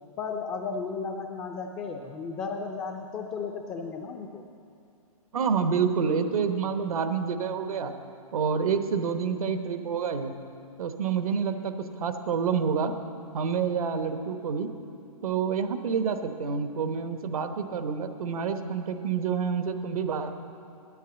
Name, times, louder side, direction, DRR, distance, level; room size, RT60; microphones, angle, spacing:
voice 1, 0.2-4.4, left 5 dB, 15° left, 1 dB, 0.5 m, -34 dB
voice 2, 5.3-7.9 8.3-10.3 10.8-11.7 12.0-12.9 13.3-14.7 15.2-20.3, right 6 dB, 70° right, 8 dB, 1.0 m, -28 dB
9.6 x 8.5 x 7.9 m, 2.5 s
hypercardioid pair, 145°, 19 cm